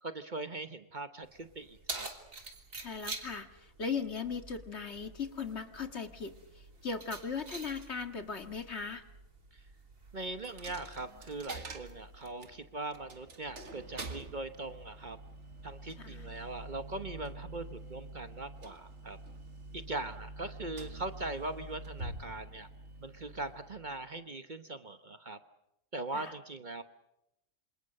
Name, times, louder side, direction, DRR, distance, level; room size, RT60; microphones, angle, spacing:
voice 1, 0.0-2.1 9.5-9.6 10.1-15.2 15.6-19.2 19.7-22.7 23.0-25.4 25.9-26.8, right 2 dB, 40° right, 9 dB, 1.2 m, -41 dB
Keys jangling, 1.2-12.3, right 3 dB, 85° right, 3.6 m, -48 dB
voice 2, 2.8-3.5 3.8-6.3 6.8-9.0 16.0-16.3 26.1-26.3, left 5 dB, 55° left, 7 dB, 2.1 m, -38 dB
Coin (dropping), 10.4-24.2, right 2 dB, 60° right, 2.2 m, -47 dB
27.5 x 26.5 x 6.6 m, 0.88 s
omnidirectional pair, 1.4 m